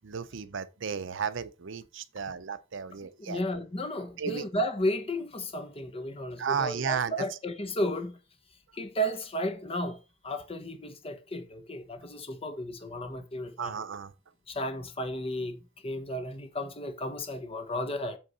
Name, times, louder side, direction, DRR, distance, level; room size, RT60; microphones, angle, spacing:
voice 1, 0.0-3.4 4.2-4.4 6.4-7.3 13.6-14.1, right 6 dB, 70° right, 0.6 m, -33 dB
voice 2, 3.2-8.2 8.7-13.8 14.5-18.2, equal, 30° left, 1.1 m, -33 dB
8.0 x 3.7 x 5.5 m
head